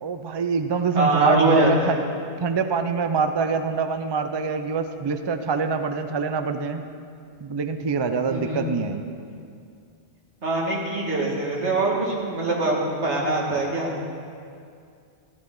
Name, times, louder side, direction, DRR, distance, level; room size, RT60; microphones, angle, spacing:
voice 1, 0.0-2.0 2.4-6.8 7.4-9.1, right 5 dB, 40° right, 8 dB, 0.3 m, -25 dB
voice 2, 0.9-1.9 8.3-8.6 10.4-13.9, right 1 dB, 75° right, -4 dB, 2.3 m, -23 dB
14.0 x 11.5 x 3.8 m, 2.4 s
omnidirectional pair, 1.2 m